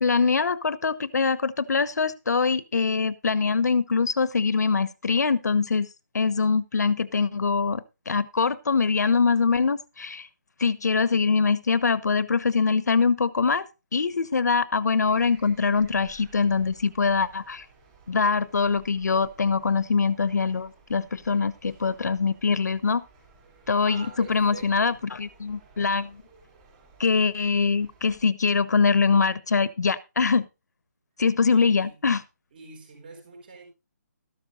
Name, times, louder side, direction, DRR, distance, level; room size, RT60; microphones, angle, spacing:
voice 1, 0.0-5.9 6.1-10.3 10.6-13.7 13.9-17.6 18.1-23.0 23.7-26.2 27.0-30.5 31.2-32.2, left 5 dB, 65° left, 16 dB, 1.0 m, -23 dB
sound 1, 15.0-28.3, right 3 dB, 15° right, 4.2 m, -56 dB
voice 2, 23.8-25.0 31.4-32.0 32.5-33.7, right 4 dB, 30° right, 2 dB, 4.3 m, -44 dB
13.5 x 12.0 x 2.5 m, 0.27 s
hypercardioid pair, 175°, 10 cm